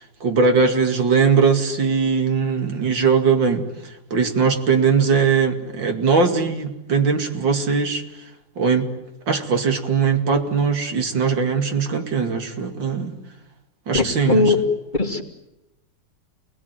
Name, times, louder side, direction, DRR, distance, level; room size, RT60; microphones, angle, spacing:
voice 1, 0.2-3.7 4.1-8.0 8.6-8.9 9.3-13.1 13.9-14.5, right 5 dB, 90° right, 5 dB, 3.0 m, -20 dB
voice 2, 13.9-14.6 14.9-15.2, left 3 dB, 25° left, 2 dB, 2.2 m, -19 dB
29.0 x 20.0 x 9.3 m, 0.95 s
omnidirectional pair, 2.0 m